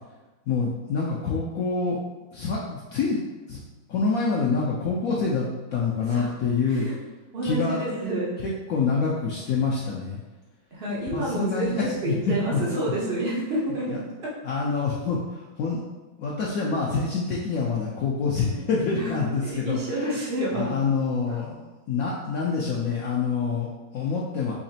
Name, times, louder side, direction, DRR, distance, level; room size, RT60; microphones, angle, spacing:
voice 1, 0.5-2.0 2.3-3.2 3.5-3.6 3.9-6.9 7.4-7.8 8.4-10.2 11.1-12.1 12.5-12.6 13.9-14.0 14.4-15.8 16.2-20.1 20.5-24.5, left 4 dB, 80° left, -4 dB, 0.7 m, -26 dB
voice 2, 7.3-8.4 10.7-14.3 18.4-18.6 18.9-20.8 21.3-21.4, right 1 dB, 85° right, -5 dB, 0.4 m, -29 dB
4.0 x 2.9 x 2.7 m, 1.2 s
omnidirectional pair, 2.0 m